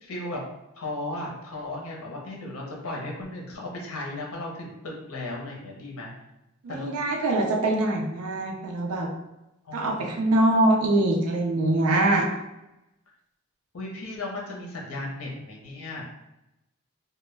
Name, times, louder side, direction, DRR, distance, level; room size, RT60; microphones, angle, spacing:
voice 1, 0.0-0.4 0.8-6.1 6.7-6.9 9.6-10.2 13.7-16.0, left 2 dB, 70° left, -2 dB, 0.6 m, -35 dB
voice 2, 6.6-9.1 9.7-12.3, right 2 dB, 85° right, 0 dB, 0.5 m, -23 dB
2.1 x 2.1 x 3.2 m, 0.92 s
head